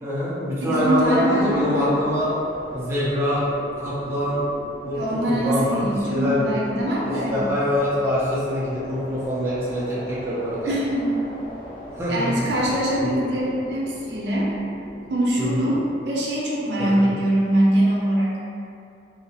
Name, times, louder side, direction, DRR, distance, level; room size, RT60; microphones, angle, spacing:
voice 1, 0.0-2.3 2.7-3.4 3.8-4.4 4.8-6.5 7.0-10.7 12.0-12.3 13.0-13.2 15.4-15.7 16.8-17.1, left 1 dB, 15° right, -10 dB, 0.5 m, -24 dB
voice 2, 0.6-1.9 4.9-7.4 10.6-11.2 12.1-14.5 15.1-18.3, right 1 dB, 70° right, -5 dB, 0.6 m, -23 dB
sound 1, 0.7-16.1, equal, 50° left, 0.4 m, -40 dB
2.7 x 2.1 x 2.7 m, 2.6 s
head